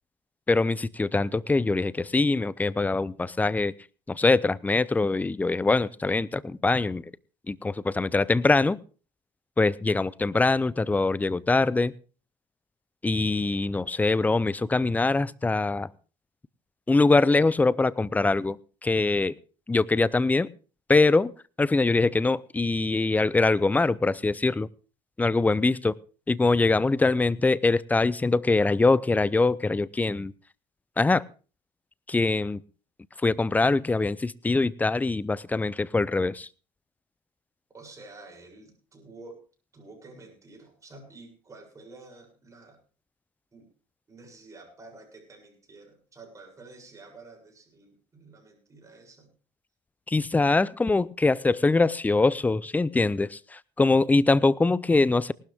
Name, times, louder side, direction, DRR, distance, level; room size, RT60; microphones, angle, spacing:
voice 1, 0.5-3.7 4.1-7.0 7.5-8.8 9.6-11.9 13.0-15.9 16.9-19.4 19.7-20.5 20.9-21.3 21.6-24.7 25.2-26.0 26.3-30.3 31.0-31.2 32.1-32.6 33.2-36.5 50.1-55.3, left 3 dB, 10° left, 0.6 m, -23 dB
voice 2, 37.7-39.4 39.7-42.8 43.5-43.7 44.1-49.3, right 3 dB, 25° right, 7.5 m, -49 dB
19.0 x 12.0 x 3.6 m
supercardioid pair, 90°, 13 cm